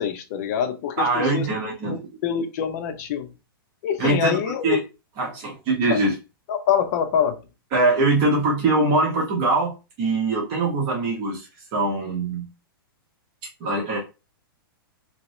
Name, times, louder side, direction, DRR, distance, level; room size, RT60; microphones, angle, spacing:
voice 1, 0.0-1.5 2.2-3.3 3.8-4.8 5.9-6.0 6.5-7.4, left 8 dB, 45° left, 0.6 m, -25 dB
voice 2, 1.0-2.0 4.0-4.4 4.6-4.8 5.2-6.1 7.7-9.7 10.0-12.5 13.6-14.0, right 2 dB, 40° right, 1.2 m, -22 dB
2.8 x 2.8 x 3.1 m
hypercardioid pair, 150°, 12 cm